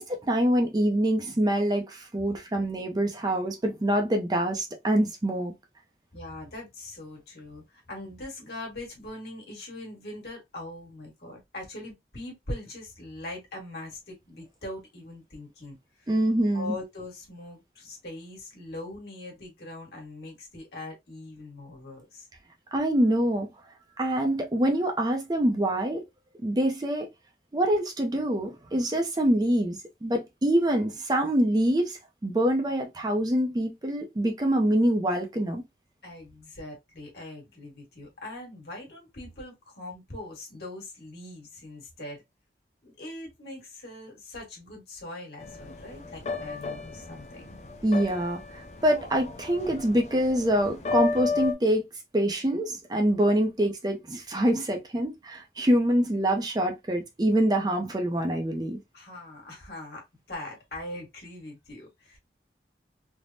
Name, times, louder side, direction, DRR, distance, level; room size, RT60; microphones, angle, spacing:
voice 1, 0.0-5.5 16.1-16.8 22.7-23.5 24.0-26.0 26.4-27.1 27.5-35.6 47.8-51.9 52.1-58.8, right 1 dB, 20° right, 0.4 m, -25 dB
voice 2, 6.1-16.1 16.5-22.3 36.0-42.2 42.8-47.6 58.9-62.2, left 2 dB, 65° left, 1.4 m, -41 dB
sound 1, 45.4-51.5, left 4 dB, 40° left, 0.5 m, -33 dB
3.3 x 2.1 x 2.6 m
head